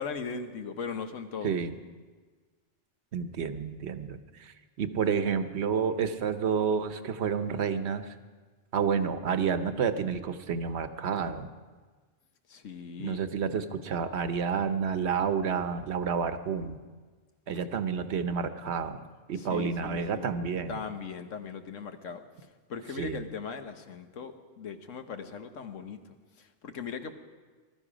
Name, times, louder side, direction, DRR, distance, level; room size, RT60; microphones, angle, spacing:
voice 1, 0.0-1.6 12.5-13.3 17.5-17.7 19.3-20.4 20.7-22.2 22.7-27.1, left 5 dB, 90° left, 7 dB, 1.4 m, -39 dB
voice 2, 1.4-1.7 3.1-8.1 8.7-11.5 13.0-16.8 17.5-19.0 19.3-20.8 23.0-23.2, right 6 dB, 65° right, 10 dB, 1.1 m, -30 dB
20.0 x 13.0 x 5.0 m, 1.4 s
omnidirectional pair, 1.3 m